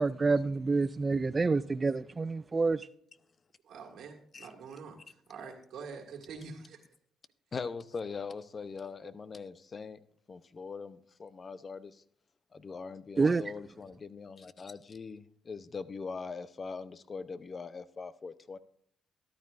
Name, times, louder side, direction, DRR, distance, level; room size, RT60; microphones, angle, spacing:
voice 1, 0.0-2.9 13.2-13.4, right 3 dB, 30° right, 0.3 m, -28 dB
voice 2, 3.6-6.8, right 5 dB, 75° right, 1.7 m, -46 dB
voice 3, 7.5-10.0 10.3-12.0 12.5-18.6, left 5 dB, 40° left, 0.7 m, -41 dB
13.0 x 12.0 x 2.5 m
cardioid pair, 90°, 0 cm